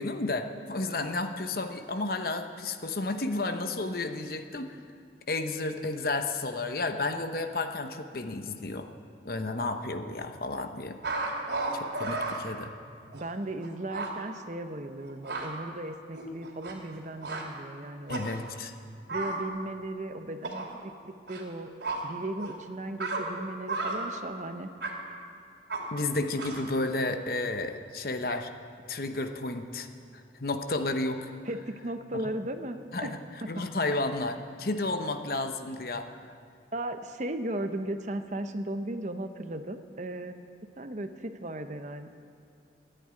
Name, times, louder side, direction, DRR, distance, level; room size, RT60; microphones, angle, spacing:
voice 1, 0.0-4.8 5.3-8.9 9.2-11.0 11.4-12.7 18.1-18.7 25.9-28.5 28.9-29.9 30.4-31.3 32.1-32.3 32.9-33.2 33.5-36.3, left 2 dB, 55° left, 7 dB, 0.9 m, -32 dB
sound 1, 11.0-12.4 13.1-13.2 13.6-13.7 13.9-14.1 15.0-15.5 16.1-17.0 17.2-17.4 18.1-18.4 19.1-19.4 20.4-20.7 21.3-21.4 21.8-22.0 22.4-22.5 23.0-23.2 23.7-24.0 24.8-24.9 25.7-25.8 26.4-26.7, right 3 dB, 75° right, 2.5 m, -33 dB
voice 2, 13.1-18.2 19.1-21.7 22.0-24.7 31.5-33.5 36.7-40.4 40.8-42.1, right 1 dB, 40° right, 8 dB, 0.8 m, -36 dB
14.5 x 9.2 x 9.6 m, 2.3 s
head